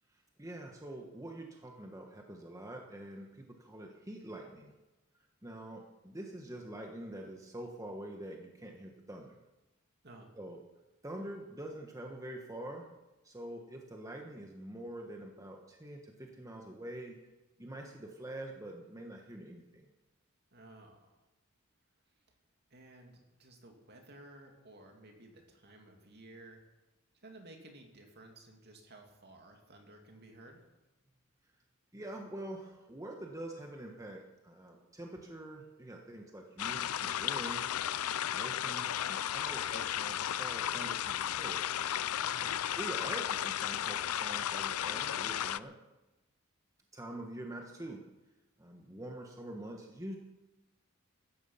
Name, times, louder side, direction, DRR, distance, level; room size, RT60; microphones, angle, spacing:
voice 1, 0.4-4.7 5.4-9.3 10.4-10.6 11.0-12.9 13.2-17.2 17.6-19.9 31.9-37.6 38.3-41.6 42.4-45.7 46.9-48.0 48.6-50.2, right 1 dB, 15° right, 1 dB, 1.4 m, -45 dB
voice 2, 20.5-21.2 22.1-22.2 22.7-26.6 27.2-30.6 42.2-42.5, right 2 dB, 50° right, 3 dB, 2.8 m, -55 dB
sound 1, 36.6-45.6, left 10 dB, 85° left, 0.5 m, -34 dB
16.5 x 13.0 x 5.8 m, 1.0 s
head